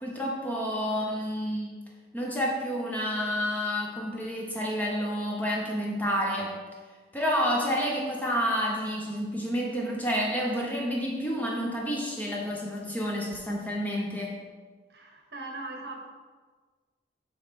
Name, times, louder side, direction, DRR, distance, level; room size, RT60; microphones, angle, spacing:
voice 1, 0.0-1.8 2.1-6.6 7.1-14.3, equal, 10° left, -2 dB, 0.8 m, -29 dB
voice 2, 14.9-16.1, right 2 dB, 65° right, 1 dB, 1.0 m, -40 dB
6.9 x 3.2 x 5.1 m, 1.4 s
head